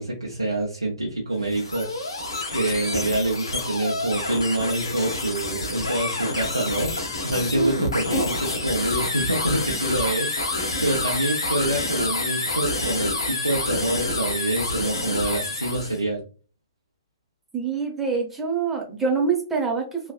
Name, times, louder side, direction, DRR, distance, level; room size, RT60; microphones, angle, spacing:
voice 1, 0.0-16.2, right 1 dB, 90° right, -4 dB, 0.8 m, -26 dB
sound 1, 1.4-16.0, left 2 dB, 70° left, 0.8 m, -28 dB
voice 2, 17.5-20.1, right 5 dB, 10° right, 0 dB, 0.9 m, -25 dB
3.1 x 2.4 x 2.4 m, 0.36 s
figure-of-eight pair, 120°, 3 cm